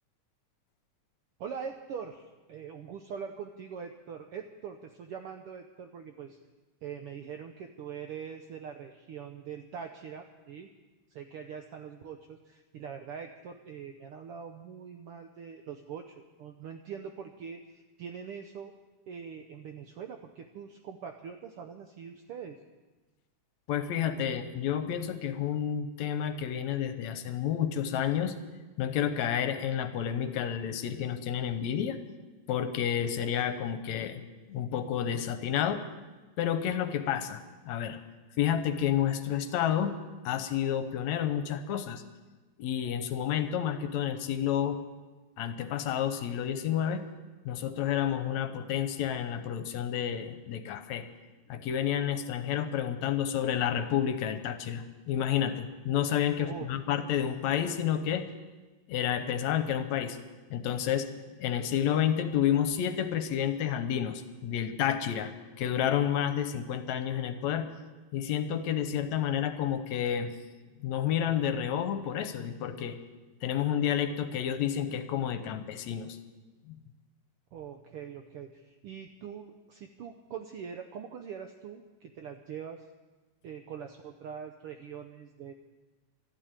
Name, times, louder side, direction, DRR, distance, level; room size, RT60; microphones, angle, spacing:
voice 1, 1.4-6.4 6.8-10.7 11.1-18.7 19.1-22.6 56.4-56.7 77.5-82.9 83.4-85.5, right 7 dB, 80° right, 6 dB, 1.3 m, -43 dB
voice 2, 23.7-28.4 28.8-32.0 32.5-34.2 34.5-35.8 36.4-37.4 37.7-38.0 38.4-40.0 40.3-42.0 42.6-44.8 45.4-47.0 47.5-51.0 51.5-58.3 58.9-60.2 60.5-61.1 61.4-65.3 65.6-67.7 68.1-70.3 70.8-73.0 73.4-76.2 76.7-76.8, left 9 dB, 75° left, 9 dB, 2.1 m, -30 dB
13.0 x 12.0 x 8.9 m, 1.2 s
omnidirectional pair, 3.4 m